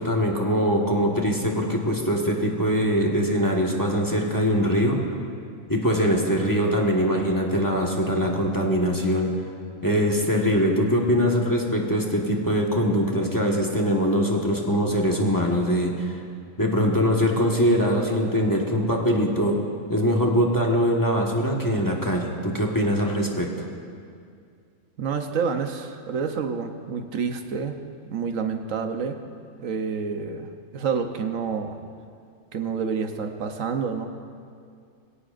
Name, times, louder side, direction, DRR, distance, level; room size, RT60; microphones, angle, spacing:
voice 1, 0.0-5.0 5.7-9.3 9.8-16.2 16.6-19.6 19.9-23.5, equal, 15° left, -1 dB, 1.4 m, -22 dB
voice 2, 25.0-27.8 28.1-29.2 29.6-30.5 30.7-31.8 32.5-34.1, right 6 dB, 80° right, 6 dB, 1.3 m, -28 dB
21.5 x 17.0 x 2.5 m, 2.3 s
omnidirectional pair, 1.3 m